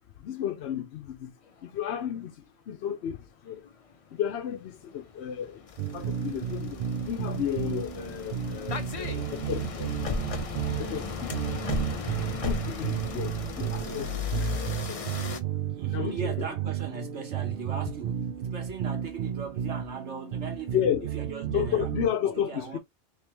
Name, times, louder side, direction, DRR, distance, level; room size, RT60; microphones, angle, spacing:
voice 1, 0.2-1.3 1.6-2.3 2.7-3.2 3.4-3.6 4.1-5.6 5.9-6.8 7.1-9.9 10.8-11.3 12.4-14.5 14.9-15.2 15.9-16.5 20.7-21.1 21.5-22.8, left 9 dB, 75° left, 0.9 m, -32 dB
sound 1, 3.7-3.9 4.5-15.4, left 5 dB, 40° left, 0.5 m, -36 dB
sound 2, 5.8-22.1, right 10 dB, 65° right, 0.7 m, -33 dB
voice 2, 15.7-20.8 21.1-21.9 22.5-22.8, right 5 dB, 85° right, 1.5 m, -39 dB
3.3 x 3.2 x 3.0 m
omnidirectional pair, 1.2 m